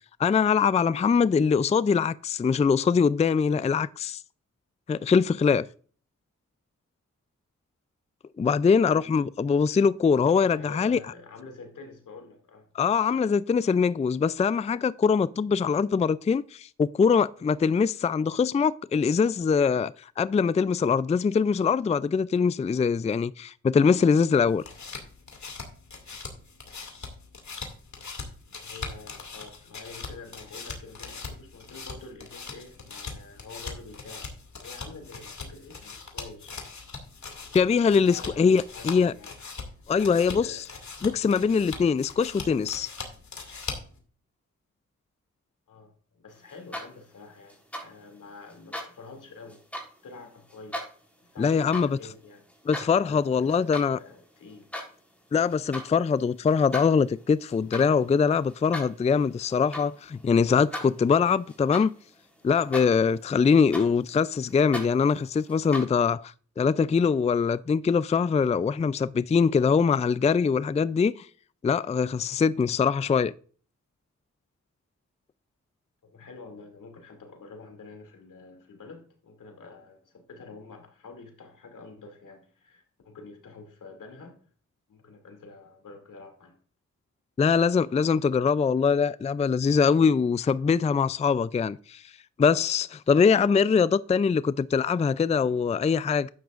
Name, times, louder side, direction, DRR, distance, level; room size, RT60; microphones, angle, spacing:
voice 1, 0.2-4.2 4.9-5.7 8.4-11.0 12.7-24.6 37.5-39.1 39.9-40.4 41.0-42.9 51.4-52.0 52.7-54.0 55.3-61.9 62.4-71.1 71.6-73.3 87.4-92.0 92.4-96.3, left 6 dB, 20° left, 0.3 m, -23 dB
voice 2, 10.1-12.7 28.5-34.3 34.6-36.6 37.3-39.6 39.9-40.7 45.7-50.9 51.3-52.5 53.1-54.7 76.0-84.4 84.9-86.5, left 3 dB, 85° left, 2.6 m, -47 dB
sound 1, 24.4-44.0, left 4 dB, 65° left, 2.4 m, -41 dB
sound 2, 46.5-47.1 47.5-47.9 48.5-48.9 49.5-49.9 50.5-50.9 51.5-51.9 52.3-52.9 53.4-53.9 54.2-54.9 55.5-55.9 56.5-62.2 62.5-63.1 63.5-65.8, equal, 5° left, 3.5 m, -39 dB
12.0 x 9.1 x 2.5 m
cardioid pair, 50°, 31 cm